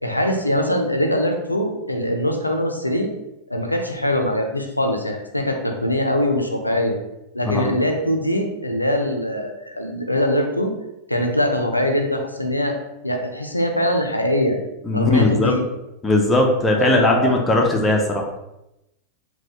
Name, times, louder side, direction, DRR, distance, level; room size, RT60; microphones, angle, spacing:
voice 1, 0.0-3.1 3.5-7.0 7.3-10.7 11.1-12.8 13.0-14.6 14.9-15.7 16.7-17.4, left 1 dB, 85° left, 4 dB, 0.4 m, -22 dB
voice 2, 7.4-7.8 14.9-15.5 16.0-18.3, left 2 dB, 10° left, 0 dB, 0.5 m, -18 dB
4.0 x 2.2 x 2.8 m, 0.90 s
figure-of-eight pair, 90°, 0 cm